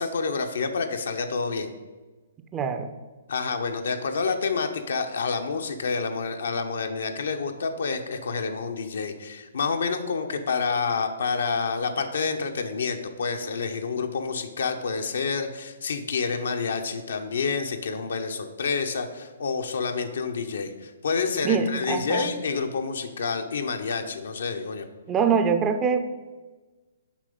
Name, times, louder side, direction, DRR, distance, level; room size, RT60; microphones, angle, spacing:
voice 1, 0.0-1.7 3.3-24.9, left 5 dB, 70° left, 6 dB, 0.9 m, -28 dB
voice 2, 2.5-2.9 21.4-22.2 25.1-26.1, right 6 dB, 20° right, 8 dB, 0.6 m, -24 dB
7.4 x 4.8 x 5.4 m, 1.2 s
figure-of-eight pair, 130°, 0 cm